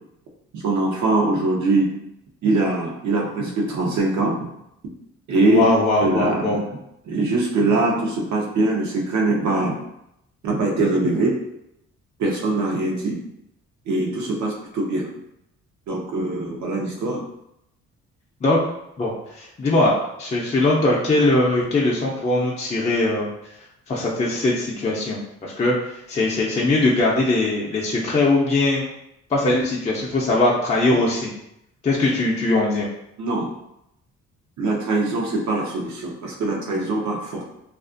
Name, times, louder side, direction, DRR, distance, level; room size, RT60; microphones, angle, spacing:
voice 1, 0.5-1.9 2.4-4.3 5.3-5.7 6.0-6.6 7.0-9.8 10.4-11.3 12.2-13.2 13.9-15.1 15.9-17.2 33.2-33.5 34.6-37.4, right 2 dB, 70° right, -1 dB, 0.8 m, -22 dB
voice 2, 5.4-6.6 18.4-18.7 19.0-23.3 23.9-28.9 29.3-31.3 31.8-32.9, left 2 dB, 25° left, -4 dB, 0.4 m, -21 dB
2.4 x 2.4 x 2.5 m, 0.81 s
cardioid pair, 90°, 30 cm